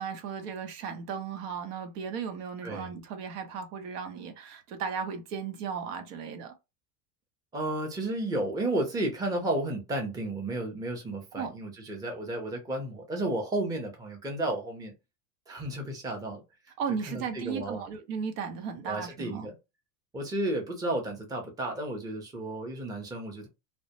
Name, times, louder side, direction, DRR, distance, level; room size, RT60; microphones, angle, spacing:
voice 1, 0.0-6.5 11.3-11.5 16.8-19.5, right 6 dB, 75° right, 0.8 m, -35 dB
voice 2, 7.5-14.9 15.5-16.4 17.1-17.8 18.8-19.5 20.1-23.5, right 1 dB, 10° right, 0.5 m, -32 dB
2.1 x 2.1 x 2.8 m
supercardioid pair, 125°, 47 cm